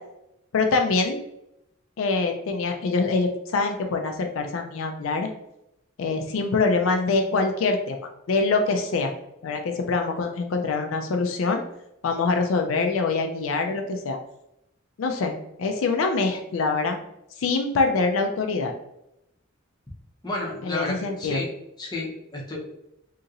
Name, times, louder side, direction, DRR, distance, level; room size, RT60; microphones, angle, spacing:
voice 1, 0.5-1.2 2.0-5.3 6.0-8.0 8.3-9.1 9.4-11.6 12.0-14.2 15.0-17.0 17.4-18.7 20.7-21.4, left 3 dB, 80° left, 4 dB, 0.4 m, -24 dB
voice 2, 20.2-21.5 21.8-22.6, left 2 dB, 20° left, -4 dB, 0.7 m, -31 dB
2.8 x 2.7 x 2.5 m, 0.83 s
head